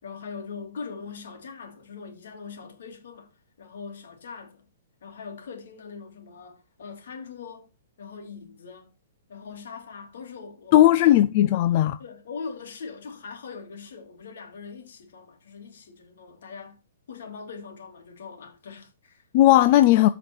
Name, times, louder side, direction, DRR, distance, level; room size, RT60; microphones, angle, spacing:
voice 1, 0.0-3.3 3.6-4.6 5.0-7.7 8.0-8.9 9.3-11.2 12.0-16.8 17.1-19.2, left 5 dB, 65° left, 3.1 m, -41 dB
voice 2, 10.7-12.0 19.3-20.1, left 14 dB, 30° left, 0.4 m, -17 dB
13.5 x 5.1 x 4.6 m
hypercardioid pair, 175°, 0 cm